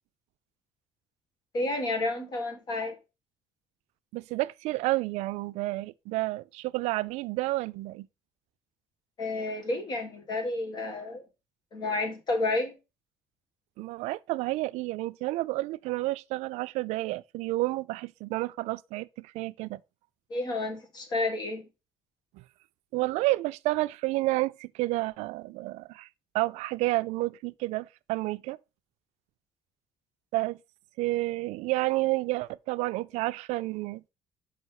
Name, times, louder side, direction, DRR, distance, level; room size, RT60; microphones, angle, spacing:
voice 1, 1.5-3.0 9.2-11.2 11.7-12.7 20.3-21.7, left 2 dB, 40° left, 1.7 m, -30 dB
voice 2, 4.1-8.1 13.8-19.8 22.3-22.4 22.9-26.1 26.3-28.6 30.3-30.6 31.0-34.0, right 19 dB, 90° right, 0.4 m, -30 dB
5.5 x 5.3 x 4.7 m
cardioid pair, 170°, 11 cm